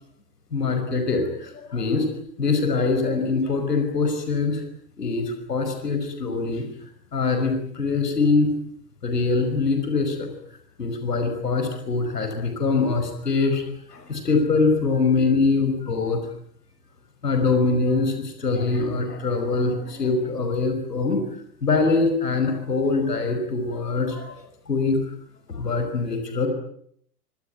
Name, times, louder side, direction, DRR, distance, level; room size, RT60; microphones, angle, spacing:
voice 1, 0.5-2.1 2.4-4.6 5.0-6.7 7.1-8.5 9.0-10.3 10.8-13.6 13.9-16.2 17.2-21.2 21.6-24.3 24.7-25.0 25.5-26.5, left 3 dB, 75° left, 6 dB, 5.8 m, -23 dB
25.5 x 24.5 x 9.3 m, 0.69 s
figure-of-eight pair, 95°, 48 cm